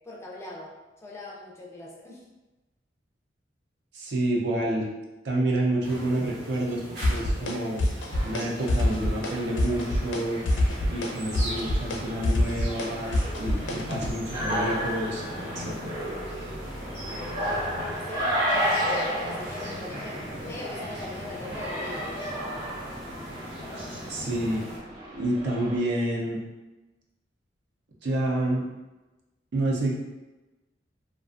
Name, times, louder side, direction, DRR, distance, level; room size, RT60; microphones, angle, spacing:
voice 1, 0.0-0.8 1.0-2.2 18.1-22.4, left 2 dB, 15° left, -3 dB, 0.4 m, -40 dB
voice 2, 3.9-4.9 5.2-7.8 8.2-10.4 10.9-16.0 24.1-24.6 25.1-26.4 28.0-28.6 29.5-29.9, right 1 dB, 70° right, -2 dB, 0.5 m, -29 dB
sound 1, 5.8-24.8, equal, 90° right, 1.0 m, -40 dB
sound 2, 7.0-7.5 7.8-8.4 8.7-9.3 9.6-10.2 10.5-14.1, left 1 dB, 80° left, 0.4 m, -25 dB
sound 3, 8.6-25.8, equal, 25° right, 0.6 m, -33 dB
2.4 x 2.3 x 2.4 m, 1.1 s
head